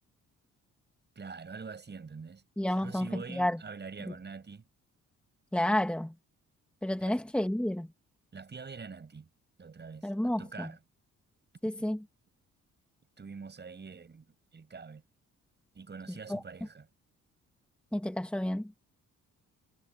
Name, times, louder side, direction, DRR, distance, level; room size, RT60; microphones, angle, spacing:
voice 1, 1.1-2.4 2.8-4.7 7.0-7.2 8.3-9.3 9.6-10.8 13.2-15.0 15.7-16.9, right 5 dB, 35° right, 8.0 m, -45 dB
voice 2, 2.6-3.6 4.1-4.2 5.5-6.1 6.8-7.9 10.0-10.7 11.6-12.0 16.3-16.4 17.9-18.7, left 1 dB, 5° left, 2.2 m, -30 dB
cardioid pair, 90°, 30 cm